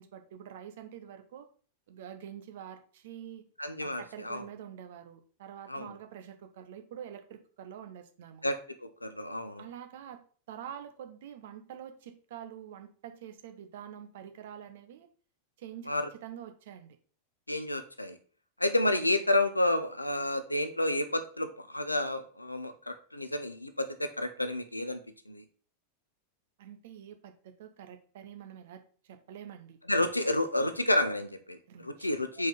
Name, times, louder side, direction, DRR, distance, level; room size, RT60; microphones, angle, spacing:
voice 1, 0.0-1.5 1.9-3.4 3.8-8.5 9.6-10.2 10.5-15.1 15.6-17.0 26.6-29.8 31.7-32.1, right 9 dB, 55° right, 7 dB, 1.0 m, -46 dB
voice 2, 3.6-4.4 5.7-6.0 8.4-9.7 15.9-16.1 17.5-18.2 18.6-25.4 29.9-32.5, left 1 dB, 85° left, 9 dB, 0.7 m, -30 dB
4.8 x 4.4 x 5.3 m, 0.41 s
figure-of-eight pair, 90°, 0 cm